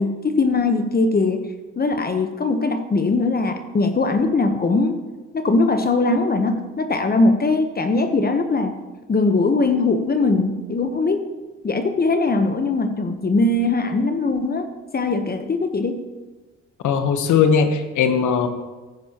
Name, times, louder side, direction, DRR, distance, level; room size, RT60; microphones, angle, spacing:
voice 1, 0.0-1.4 1.8-5.0 5.3-8.8 9.1-11.3 11.6-14.7 14.9-16.0, left 3 dB, 30° left, 7 dB, 1.0 m, -20 dB
voice 2, 16.8-18.5, left 6 dB, 80° left, 8 dB, 1.1 m, -18 dB
16.0 x 9.8 x 3.0 m, 1.2 s
cardioid pair, 90°, 30 cm